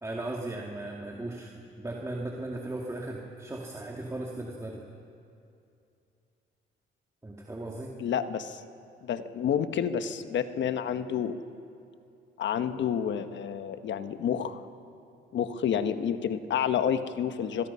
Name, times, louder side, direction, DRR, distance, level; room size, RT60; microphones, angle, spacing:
voice 1, 0.0-4.8 7.2-7.9, right 2 dB, 15° right, -1 dB, 2.3 m, -37 dB
voice 2, 8.0-8.6 9.0-11.4 12.4-14.6 15.3-17.7, left 8 dB, 65° left, 10 dB, 1.2 m, -29 dB
26.5 x 21.0 x 5.6 m, 2.6 s
cardioid pair, 90°, 20 cm